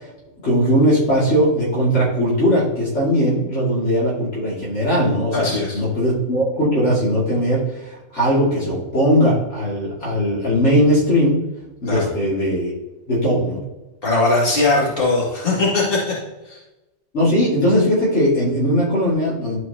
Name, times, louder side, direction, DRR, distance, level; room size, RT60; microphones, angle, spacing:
voice 1, 0.4-11.4 11.8-12.7 13.1-13.6 17.1-19.6, equal, 70° left, -6 dB, 2.6 m, -19 dB
voice 2, 5.3-5.8 11.9-12.1 14.0-16.1 16.4-16.6, left 2 dB, 50° left, -6 dB, 2.5 m, -19 dB
12.5 x 4.6 x 2.8 m, 1.1 s
omnidirectional pair, 1.2 m